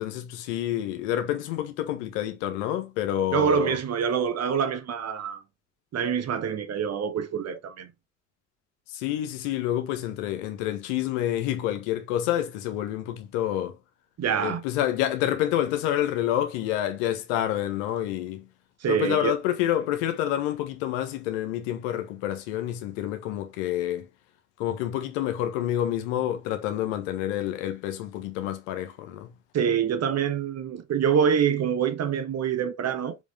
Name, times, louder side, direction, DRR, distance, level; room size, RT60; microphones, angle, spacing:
voice 1, 0.0-3.8 8.9-13.8 14.4-18.5 18.9-24.1 24.6-29.3, left 12 dB, 70° left, 1.5 m, -28 dB
voice 2, 3.3-5.4 5.9-7.9 14.2-14.6 18.8-19.3 29.5-33.2, right 7 dB, 45° right, 1.3 m, -25 dB
5.8 x 5.3 x 3.5 m
figure-of-eight pair, 50°, 36 cm